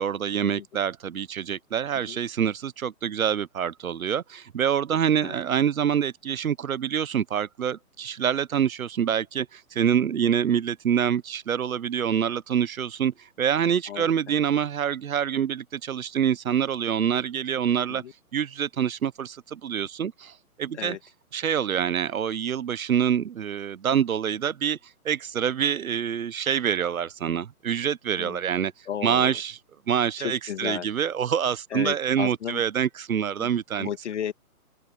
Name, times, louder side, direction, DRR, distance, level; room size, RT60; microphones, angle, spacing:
voice 1, 0.0-18.0 18.3-21.0 21.3-24.8 25.0-28.7 29.0-29.5 29.9-33.9, right 8 dB, 65° right, 1.1 m, -26 dB
voice 2, 13.9-14.4 17.9-18.1 20.7-21.0 28.1-28.4 28.9-29.4 30.2-30.9 31.7-32.6 33.4-33.5 33.8-34.3, left 9 dB, 50° left, 2.5 m, -34 dB
open air
hypercardioid pair, 160°, 45 cm